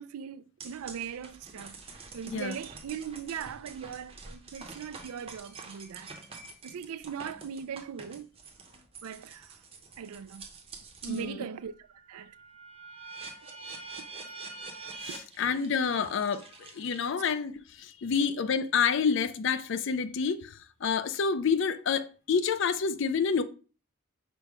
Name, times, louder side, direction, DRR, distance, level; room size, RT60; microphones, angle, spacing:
voice 1, 0.0-1.8 2.1-6.1 6.6-8.3 9.0-9.6 10.0-10.5 11.0-11.7 12.1-12.3, right 7 dB, 85° right, 0.4 m, -39 dB
sound 1, 0.6-11.3 11.7-17.4, right 4 dB, 25° right, 0.6 m, -46 dB
voice 2, 11.1-11.4 15.0-23.4, left 6 dB, 55° left, 0.4 m, -28 dB
5.1 x 2.1 x 4.6 m
head